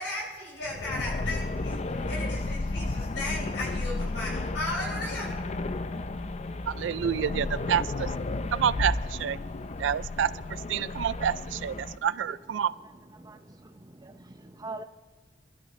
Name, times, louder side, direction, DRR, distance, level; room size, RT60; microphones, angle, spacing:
voice 1, 0.0-5.3, left 2 dB, 90° left, 6.2 m, -35 dB
sound 1, 0.6-12.0, left 2 dB, 40° left, 0.5 m, -33 dB
voice 2, 6.7-8.1 8.5-9.4 9.8-10.3 10.7-12.7, right 8 dB, 85° right, 0.3 m, -28 dB
voice 3, 13.2-14.8, right 2 dB, 20° right, 0.7 m, -43 dB
26.0 x 12.5 x 3.2 m
head